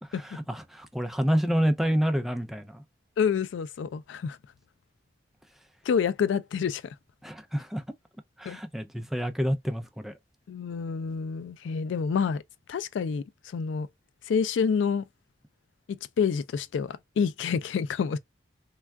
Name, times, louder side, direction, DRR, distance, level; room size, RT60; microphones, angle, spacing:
voice 1, 0.0-2.8 7.2-7.8 8.4-10.2, equal, ahead, 0.4 m, -28 dB
voice 2, 3.2-4.4 5.9-6.9 8.5-8.6 10.5-12.4 12.7-13.9 14.3-15.1 15.9-18.2, left 6 dB, 80° left, 0.3 m, -28 dB
3.3 x 2.3 x 2.2 m
head